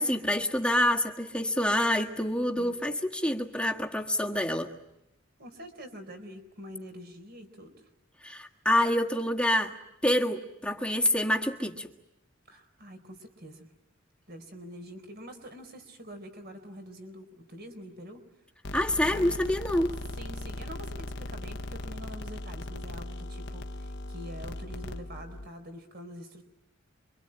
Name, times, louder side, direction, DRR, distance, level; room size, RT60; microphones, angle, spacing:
voice 1, 0.0-4.7 8.2-9.7 10.0-11.9 18.7-20.0, left 1 dB, 5° left, 2 dB, 1.7 m, -27 dB
voice 2, 5.4-7.7 12.5-13.7 14.3-18.2 20.1-26.4, equal, 50° right, 8 dB, 4.3 m, -45 dB
sound 1, 18.6-25.5, left 1 dB, 60° left, 1.2 m, -38 dB
27.0 x 25.0 x 8.8 m, 0.88 s
head